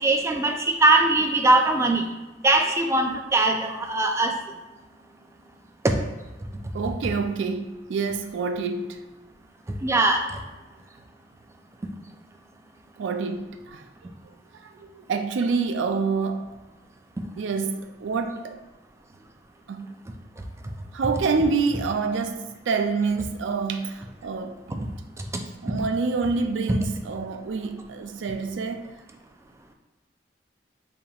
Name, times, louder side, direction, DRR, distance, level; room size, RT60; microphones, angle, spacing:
voice 1, 0.0-2.1 2.4-4.3 5.8-6.0 9.8-10.2, right 2 dB, 15° right, 0.3 m, -20 dB
voice 2, 6.7-9.0 13.0-13.9 14.6-16.6 17.4-18.6 19.7-20.0 20.9-24.9 25.6-28.9, right 4 dB, 85° right, 0.4 m, -27 dB
5.2 x 2.9 x 2.4 m
head